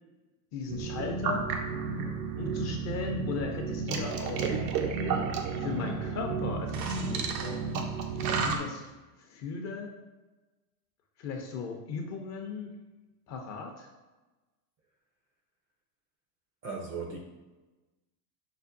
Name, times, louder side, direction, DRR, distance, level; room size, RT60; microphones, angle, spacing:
voice 1, 0.5-1.5 2.4-4.5 5.6-7.6 8.4-9.9 11.2-12.7 13.3-13.9, left 5 dB, 35° left, 3 dB, 0.5 m, -37 dB
sound 1, 0.7-8.6, right 5 dB, 90° right, 0.7 m, -32 dB
voice 2, 16.6-17.2, right 4 dB, 30° right, 0 dB, 0.4 m, -36 dB
5.6 x 2.0 x 2.5 m, 1.2 s
hypercardioid pair, 105°, 50 cm